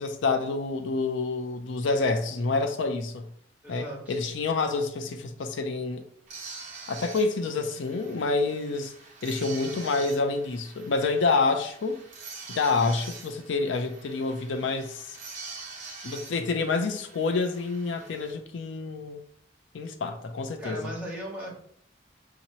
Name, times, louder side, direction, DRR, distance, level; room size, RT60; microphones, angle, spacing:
voice 1, 0.0-3.3 3.7-6.1 6.9-8.9 9.2-12.0 12.5-15.2 16.0-19.2 19.7-20.8, left 3 dB, 75° left, 0.5 m, -28 dB
voice 2, 3.6-4.2 20.6-21.5, equal, 5° right, 1.4 m, -37 dB
sound 1, 6.3-18.3, right 4 dB, 40° right, 1.1 m, -45 dB
5.7 x 2.8 x 3.0 m
head